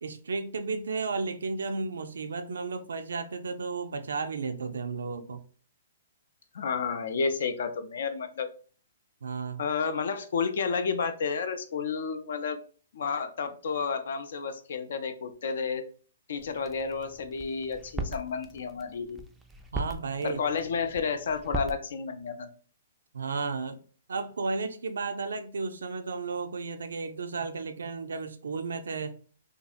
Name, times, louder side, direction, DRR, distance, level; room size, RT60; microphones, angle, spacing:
voice 1, 0.0-5.4 9.2-9.6 19.7-20.4 23.1-23.8 24.1-29.2, right 4 dB, 85° right, 0.3 m, -33 dB
voice 2, 6.5-8.5 9.6-12.6 12.9-15.8 16.3-19.2 20.2-22.5, left 5 dB, 70° left, 0.4 m, -31 dB
sound 1, 16.4-21.7, right 2 dB, 5° right, 0.3 m, -40 dB
2.6 x 2.4 x 2.4 m
hypercardioid pair, 140°, 0 cm